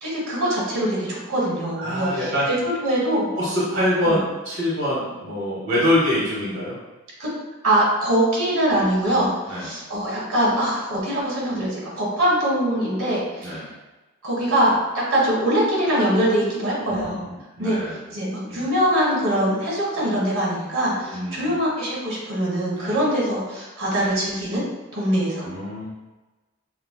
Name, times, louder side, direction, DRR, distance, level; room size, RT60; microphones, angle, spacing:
voice 1, 0.0-3.3 4.0-4.2 7.2-7.3 7.6-13.6 14.2-17.2 17.6-17.8 18.1-24.6 24.9-25.5, right 1 dB, 85° right, -5 dB, 1.5 m, -23 dB
voice 2, 1.8-2.5 3.4-6.8 9.1-9.7 13.4-13.7 16.8-17.2 17.6-18.0 18.5-18.7 21.1-21.5 22.8-23.0 25.2-25.9, left 1 dB, 55° right, -8 dB, 0.9 m, -25 dB
5.7 x 2.2 x 2.2 m, 1.2 s
head